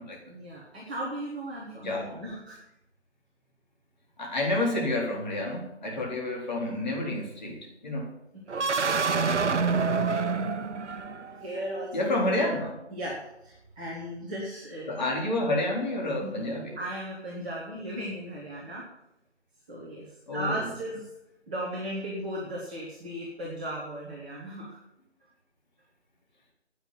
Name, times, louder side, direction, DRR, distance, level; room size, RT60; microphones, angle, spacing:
voice 1, 0.2-2.6 5.9-6.1 8.5-10.5 11.3-12.2 12.9-14.9 16.2-18.8 19.7-21.1 21.5-24.8, right 1 dB, 5° right, -8 dB, 1.2 m, -37 dB
voice 2, 1.7-2.2 4.2-8.1 11.9-12.8 14.9-16.8 20.3-20.6, left 1 dB, 40° left, -1 dB, 4.1 m, -29 dB
sound 1, 8.5-11.5, right 4 dB, 80° right, 0.8 m, -27 dB
10.5 x 9.3 x 8.9 m, 0.87 s
figure-of-eight pair, 160°, 35 cm